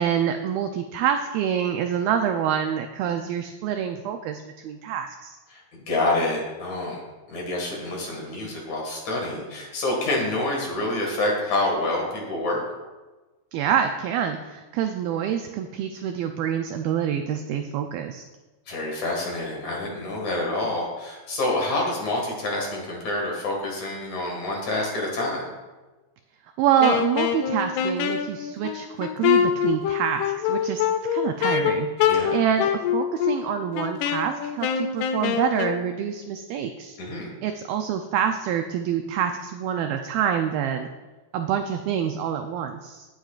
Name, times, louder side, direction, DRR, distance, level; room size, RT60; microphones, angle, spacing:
voice 1, 0.0-5.4 13.5-18.2 26.6-37.0 37.4-40.9 41.3-43.1, right 8 dB, 85° right, 6 dB, 2.1 m, -26 dB
voice 2, 5.5-7.0 7.3-12.6 18.7-25.5 32.1-32.4 37.0-37.3, left 2 dB, 50° left, -1 dB, 2.8 m, -27 dB
Wind instrument woodwind instrument, 26.8-35.8, left 8 dB, 80° left, 2.6 m, -25 dB
18.0 x 9.0 x 2.4 m, 1.2 s
omnidirectional pair, 4.8 m